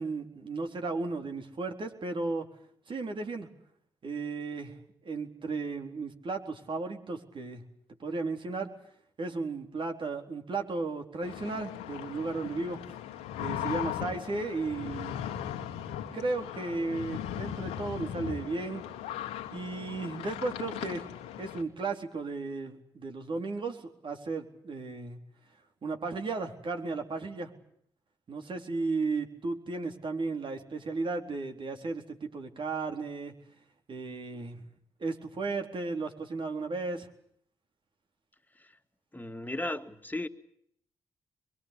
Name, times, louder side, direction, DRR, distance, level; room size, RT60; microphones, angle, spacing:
voice 1, 0.0-2.5 2.9-3.5 4.0-4.8 5.0-7.6 8.0-8.7 9.2-12.8 13.4-15.2 16.1-18.8 19.5-21.1 21.4-25.2 25.8-27.5 28.3-33.3 33.9-34.6 35.0-37.1, right 3 dB, 55° right, 4.2 m, -34 dB
Slurp Tea, 11.2-21.6, left 10 dB, 90° left, 2.0 m, -38 dB
voice 2, 39.1-40.3, left 1 dB, 15° left, 2.4 m, -36 dB
24.5 x 23.0 x 8.5 m
supercardioid pair, 45°, 10 cm